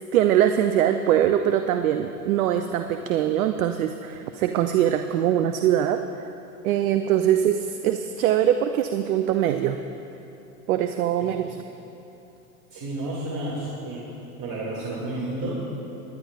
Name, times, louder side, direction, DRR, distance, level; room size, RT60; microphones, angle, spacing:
voice 1, 0.1-6.0 6.6-9.8 10.7-11.6, right 10 dB, 65° right, 8 dB, 0.6 m, -22 dB
voice 2, 11.2-11.6 12.7-14.1 14.4-15.6, right 1 dB, 40° right, -6 dB, 2.5 m, -31 dB
22.5 x 10.5 x 2.5 m, 2.9 s
hypercardioid pair, 90°, 45 cm